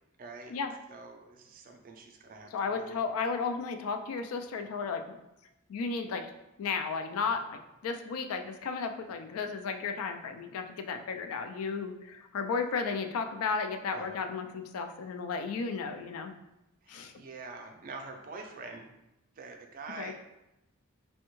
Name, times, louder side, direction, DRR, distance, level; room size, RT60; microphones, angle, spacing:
voice 1, 0.2-0.5 0.9-3.0 13.9-14.2 16.8-18.9 19.4-20.1, right 3 dB, 40° right, 3 dB, 0.4 m, -45 dB
voice 2, 2.5-5.2 5.7-6.3 6.6-16.3 16.9-17.1 20.0-20.1, left 5 dB, 75° left, 7 dB, 0.3 m, -34 dB
3.4 x 2.1 x 3.0 m, 0.92 s
head